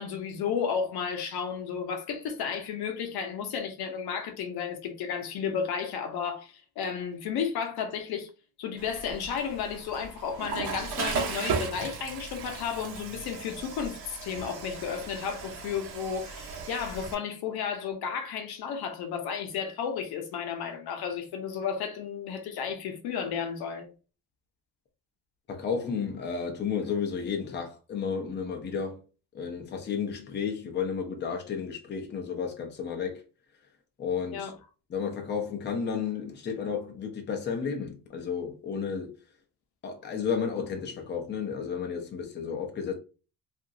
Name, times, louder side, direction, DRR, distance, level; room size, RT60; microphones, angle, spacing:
voice 1, 0.0-8.3 8.6-23.9 34.3-34.6, left 7 dB, 75° left, 0.7 m, -33 dB
Water / Toilet flush, 8.8-17.1, right 5 dB, 70° right, 0.8 m, -36 dB
voice 2, 25.5-29.0 29.3-33.2 34.0-34.5 34.9-39.1 39.8-42.9, left 6 dB, 30° left, 0.6 m, -32 dB
2.8 x 2.5 x 2.5 m
cardioid pair, 155°, 39 cm